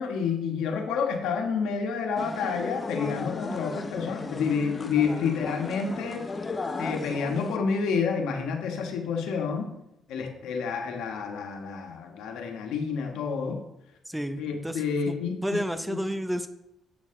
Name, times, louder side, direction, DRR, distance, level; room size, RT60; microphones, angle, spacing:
voice 1, 0.0-6.3 6.8-9.7 10.1-13.6 14.4-15.6 15.9-16.0, left 5 dB, 85° left, 4 dB, 1.2 m, -29 dB
sound 1, 2.2-7.6, left 3 dB, 30° left, 0.8 m, -35 dB
voice 2, 14.1-15.1 15.4-16.5, equal, 5° right, 9 dB, 0.6 m, -31 dB
8.0 x 6.3 x 3.7 m, 0.87 s
cardioid pair, 90°, 0 cm